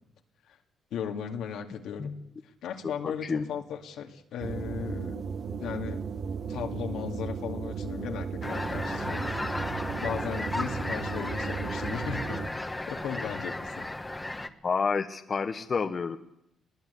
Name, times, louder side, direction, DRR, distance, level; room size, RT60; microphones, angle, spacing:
voice 1, 0.9-2.2 2.6-5.2 5.6-6.0 6.5-9.3 10.0-12.4 12.9-13.9, left 8 dB, 80° left, 4 dB, 2.2 m, -36 dB
voice 2, 3.0-3.5 14.6-16.2, left 5 dB, 40° left, 8 dB, 1.1 m, -29 dB
sound 1, 4.4-12.5, right 6 dB, 55° right, 1.4 m, -35 dB
sound 2, 8.4-14.5, left 2 dB, 15° left, 1.4 m, -34 dB
20.5 x 19.5 x 8.3 m, 0.81 s
cardioid pair, 90°, 0 cm